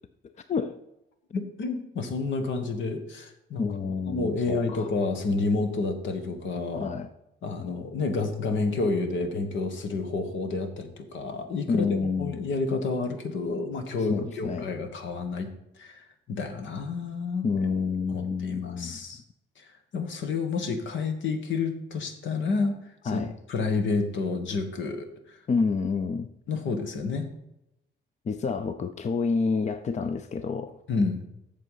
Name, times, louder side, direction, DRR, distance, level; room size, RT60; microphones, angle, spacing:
voice 1, 0.2-0.8 3.6-4.9 6.7-7.1 11.7-12.4 14.1-14.7 17.4-19.0 23.1-23.3 25.5-26.3 28.3-30.8, left 5 dB, 35° left, 0.6 m, -29 dB
voice 2, 1.3-3.7 4.1-6.9 7.4-11.8 12.2-17.5 18.1-19.2 19.6-19.7 19.9-23.2 23.5-25.4 26.5-27.3 30.9-31.2, left 3 dB, 70° left, 1.5 m, -29 dB
7.8 x 6.9 x 5.7 m
cardioid pair, 90°, 20 cm